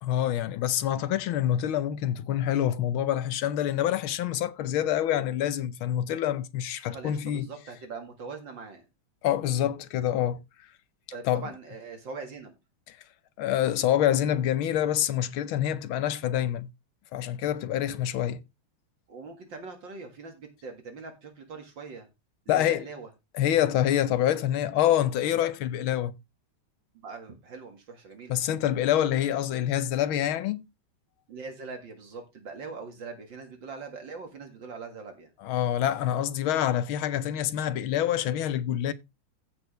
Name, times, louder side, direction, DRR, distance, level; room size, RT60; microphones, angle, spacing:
voice 1, 0.0-7.5 9.2-10.4 11.2-11.4 12.9-13.0 13.4-16.7 17.1-18.4 22.5-22.8 23.3-26.1 28.3-30.6 35.4-38.9, left 11 dB, 80° left, 1.5 m, -26 dB
voice 2, 6.9-8.9 11.1-12.5 19.1-22.1 22.5-23.1 27.0-28.4 31.3-35.3, right 4 dB, 65° right, 2.5 m, -42 dB
15.0 x 6.2 x 3.2 m
omnidirectional pair, 2.3 m